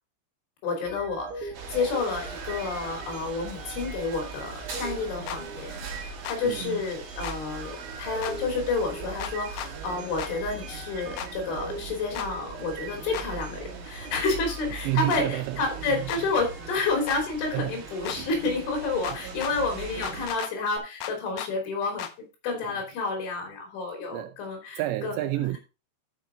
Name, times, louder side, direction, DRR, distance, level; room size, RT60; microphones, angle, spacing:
voice 1, 0.6-25.2, left 3 dB, 70° left, 5.6 m, -30 dB
sound 1, 0.8-18.0 18.4-18.7 20.8-20.9, right 3 dB, 70° right, 4.1 m, -43 dB
sound 2, 1.5-20.3, right 5 dB, 55° right, 3.6 m, -40 dB
sound 3, 5.3-5.4 6.2-6.4 7.2-7.4 8.2-8.4 9.2-9.7 10.2-10.3 11.2-11.3 12.2-12.3 13.1-13.3 14.1-14.3 15.1-15.2 16.1-16.2 17.1-17.2 18.1-18.2 19.0-19.5 20.0-20.5 21.0-21.5 22.0-22.1, left 10 dB, 85° left, 2.3 m, -35 dB
voice 2, 6.4-6.8 14.8-15.6 15.9-16.1 17.5-17.8 19.0-19.2 22.7-22.8 24.1-24.4 24.8-25.6, right 16 dB, 85° right, 2.5 m, -30 dB
13.0 x 6.0 x 3.9 m
omnidirectional pair, 5.7 m